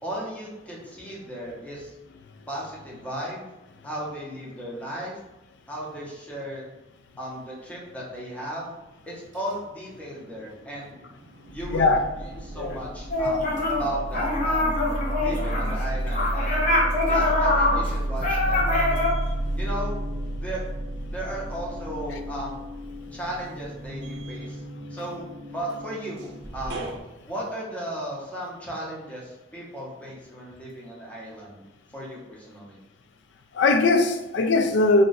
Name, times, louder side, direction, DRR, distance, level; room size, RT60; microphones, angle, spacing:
voice 1, 0.0-1.9 2.5-3.5 3.8-5.2 5.7-6.7 7.2-8.7 9.1-11.1 11.5-11.9 12.2-14.8 15.2-16.8 17.1-19.0 19.6-20.0 20.4-20.6 21.1-22.5 23.1-24.6 24.9-26.9 27.2-31.6 31.9-32.8, right 1 dB, 10° left, 0.8 m, -35 dB
sound 1, 9.9-10.7 11.1-27.0, right 1 dB, 70° right, 0.5 m, -32 dB
voice 2, 11.7-12.0 12.5-12.8 33.5-35.0, left 3 dB, 75° left, 0.4 m, -20 dB
sound 2, 13.1-13.9 14.1-19.1, left 2 dB, 45° left, 0.8 m, -24 dB
2.5 x 2.3 x 3.9 m
head